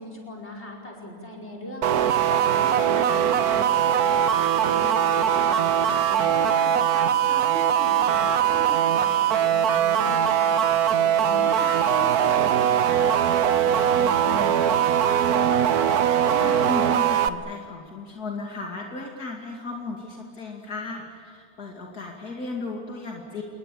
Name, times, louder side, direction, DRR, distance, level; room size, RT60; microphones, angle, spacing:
voice 1, 0.0-1.9 2.3-5.7 6.1-10.6 11.0-15.2, left 1 dB, 45° left, -1 dB, 5.5 m, -38 dB
sound 1, 1.8-17.3, right 9 dB, 75° right, 1.4 m, -21 dB
voice 2, 16.3-23.4, left 3 dB, 80° left, 0 dB, 3.1 m, -35 dB
28.0 x 21.0 x 8.7 m, 2.2 s
omnidirectional pair, 1.6 m